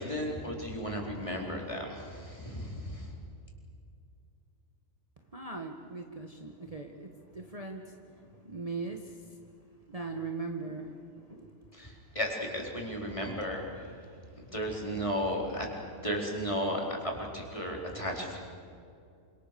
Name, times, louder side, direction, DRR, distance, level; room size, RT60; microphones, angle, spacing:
voice 1, 0.0-3.1 11.8-13.6 14.5-15.7 16.0-18.4, equal, 25° left, -1 dB, 4.6 m, -34 dB
voice 2, 5.3-9.2 9.9-11.7, right 3 dB, 30° right, 2 dB, 1.6 m, -40 dB
27.5 x 26.5 x 6.9 m, 2.4 s
omnidirectional pair, 1.4 m